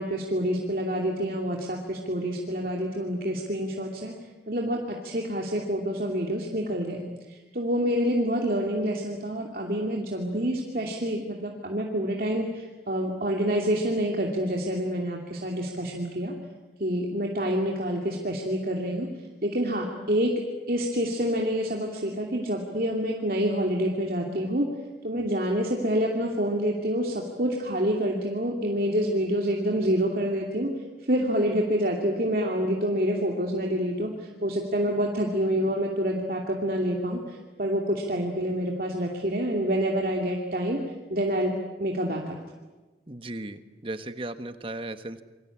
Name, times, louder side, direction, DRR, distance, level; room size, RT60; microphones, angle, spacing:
voice 1, 0.0-4.1 4.5-16.3 16.8-19.1 19.4-20.3 20.7-24.7 25.0-30.7 31.1-40.8 41.1-41.5 41.8-42.3, equal, 55° right, 0 dB, 2.8 m, -27 dB
voice 2, 43.1-45.2, right 2 dB, 30° right, 10 dB, 1.4 m, -36 dB
27.5 x 24.0 x 8.6 m, 1.2 s
head